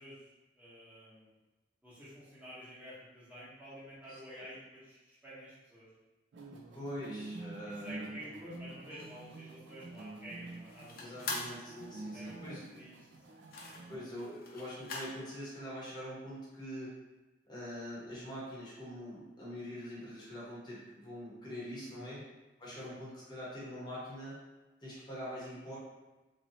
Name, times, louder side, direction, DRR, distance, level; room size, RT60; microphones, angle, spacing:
voice 1, 0.0-1.4 1.8-5.9 7.6-11.4 12.1-12.9 13.6-14.0 21.7-22.1 22.7-23.0, equal, 10° right, -10 dB, 1.0 m, -50 dB
voice 2, 4.1-4.5 6.7-8.1 11.0-12.7 13.9-17.0 17.4-22.2 22.6-24.4 24.8-25.8, equal, 25° left, -7 dB, 0.8 m, -44 dB
sound 1, 6.3-14.0, right 2 dB, 75° right, 0.4 m, -47 dB
sound 2, 8.9-15.2, left 3 dB, 50° left, 0.6 m, -44 dB
3.0 x 2.6 x 2.7 m, 1.1 s
head